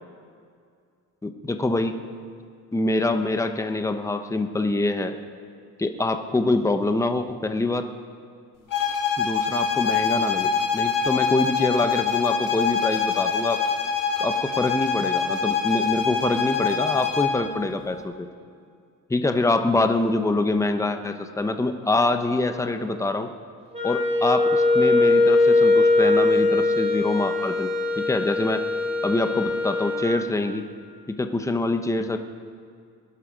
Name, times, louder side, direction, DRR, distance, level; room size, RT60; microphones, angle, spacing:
voice 1, 1.2-1.9 2.7-5.1 5.8-7.8 9.2-13.6 14.2-18.3 19.1-23.3 23.8-27.7 28.0-28.6 29.0-30.6 31.1-32.2, left 2 dB, 10° left, 7 dB, 0.8 m, -25 dB
sound 1, 8.7-17.4, left 6 dB, 60° left, 2.4 m, -24 dB
Wind instrument woodwind instrument, 23.7-30.2, left 3 dB, 15° right, 3.1 m, -21 dB
21.5 x 11.5 x 5.1 m, 2.2 s
cardioid pair, 140°, 38 cm